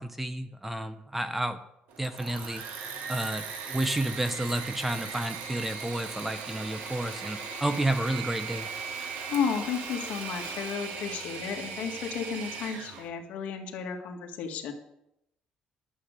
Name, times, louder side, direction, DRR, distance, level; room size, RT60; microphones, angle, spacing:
voice 1, 0.0-1.6 2.0-2.6 3.1-8.7, right 1 dB, 5° right, 10 dB, 0.6 m, -31 dB
Engine / Mechanisms, 1.9-13.1, right 5 dB, 90° right, 1.8 m, -38 dB
voice 2, 9.3-14.7, left 6 dB, 70° left, 3 dB, 2.0 m, -33 dB
11.5 x 7.8 x 6.6 m, 0.81 s
cardioid pair, 165°, 3 cm